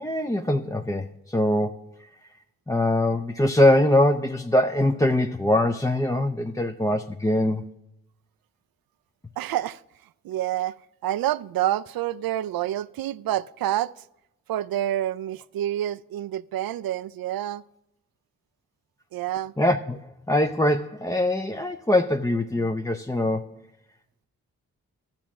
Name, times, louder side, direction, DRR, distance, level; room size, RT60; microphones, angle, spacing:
voice 1, 0.0-1.8 2.7-7.7 19.6-20.0 20.3-23.6, left 1 dB, 10° left, 0.5 m, -23 dB
voice 2, 9.4-9.8 10.2-10.8 11.0-14.0 14.5-17.6 19.1-19.5, right 12 dB, 75° right, 0.5 m, -28 dB
12.0 x 7.3 x 6.0 m
supercardioid pair, 45°, 36 cm